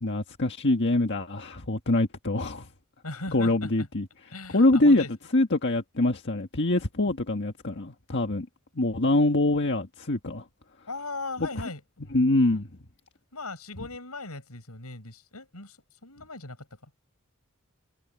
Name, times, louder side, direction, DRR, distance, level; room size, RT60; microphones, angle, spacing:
voice 1, 0.0-2.7 3.3-4.1 4.5-5.0 5.3-8.5 8.7-10.4 11.4-11.5 12.1-12.7, left 2 dB, 55° left, 1.7 m, -24 dB
voice 2, 3.0-3.9 4.3-5.1 10.9-11.8 13.3-15.8 16.0-16.6, left 3 dB, 85° left, 7.7 m, -38 dB
head